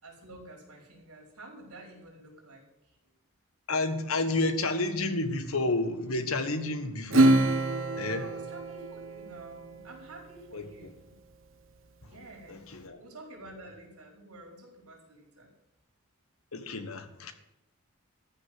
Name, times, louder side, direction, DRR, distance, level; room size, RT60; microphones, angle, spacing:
voice 1, 0.0-2.9 8.1-11.1 12.0-12.6 13.0-15.5, right 2 dB, 90° right, 5.1 m, -49 dB
voice 2, 3.7-7.5 8.0-8.3 10.5-10.9 12.0-12.2 12.5-13.0 16.5-17.3, left 2 dB, 75° left, 1.6 m, -31 dB
Acoustic guitar / Strum, 7.1-10.0, right 2 dB, 60° right, 1.1 m, -26 dB
14.0 x 6.3 x 9.7 m
head